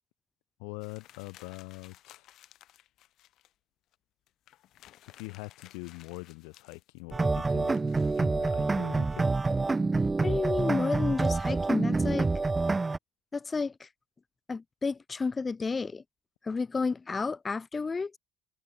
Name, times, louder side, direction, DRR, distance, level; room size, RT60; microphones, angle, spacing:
voice 1, 0.6-2.3 5.1-7.9 8.2-9.3, left 40 dB or more, 80° left, 4.2 m, -43 dB
sound 1, 0.8-3.5 3.9-4.0 4.3-8.2, left 13 dB, 60° left, 3.9 m, -57 dB
sound 2, 7.1-13.0, right 3 dB, 20° right, 0.3 m, -27 dB
voice 2, 10.2-12.3 13.3-13.9 14.5-16.0 16.4-18.2, left 4 dB, 25° left, 2.0 m, -31 dB
supercardioid pair, 95°, 0 cm